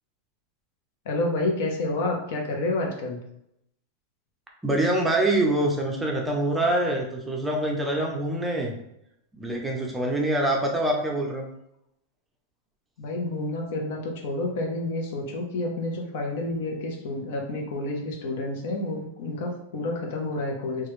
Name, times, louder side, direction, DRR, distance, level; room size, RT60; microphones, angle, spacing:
voice 1, 1.0-3.2 13.0-20.9, left 2 dB, 65° left, 1 dB, 0.8 m, -29 dB
voice 2, 4.6-8.8 9.4-11.5, right 1 dB, 10° right, 0 dB, 0.5 m, -25 dB
3.0 x 2.3 x 3.0 m, 0.78 s
supercardioid pair, 140°, 0 cm